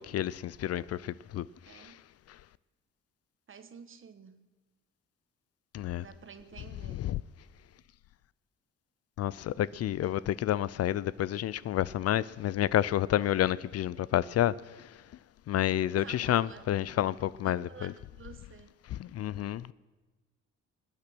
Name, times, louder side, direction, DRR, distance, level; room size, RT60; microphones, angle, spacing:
voice 1, 0.0-1.9 5.7-6.0 7.0-7.2 9.2-15.0 15.5-17.9 18.9-19.7, left 12 dB, 55° left, 0.4 m, -30 dB
voice 2, 1.6-2.0 3.5-4.5 6.0-7.1 16.0-16.6 17.4-18.7, right 6 dB, 40° right, 1.4 m, -50 dB
22.5 x 8.8 x 6.1 m
cardioid pair, 90°, 30 cm